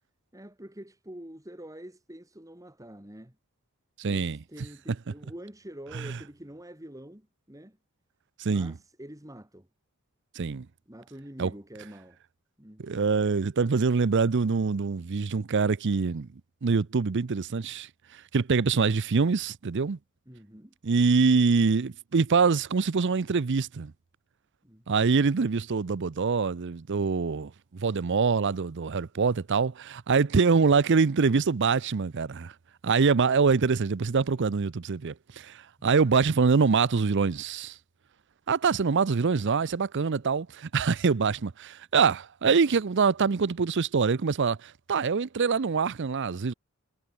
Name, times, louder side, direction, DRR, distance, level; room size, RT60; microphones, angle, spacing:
voice 1, 0.3-3.4 4.0-7.8 8.4-9.7 10.9-12.2 12.6-13.1 20.3-20.7 24.6-24.8 35.8-35.9, right 1 dB, 15° right, 3.0 m, -46 dB
voice 2, 4.0-4.4 5.9-6.1 8.4-8.7 10.4-10.7 11.4-11.5 12.8-16.3 16.6-20.0 20.8-23.9 24.9-32.5 32.8-37.7 38.5-46.5, right 5 dB, 55° right, 0.5 m, -25 dB
head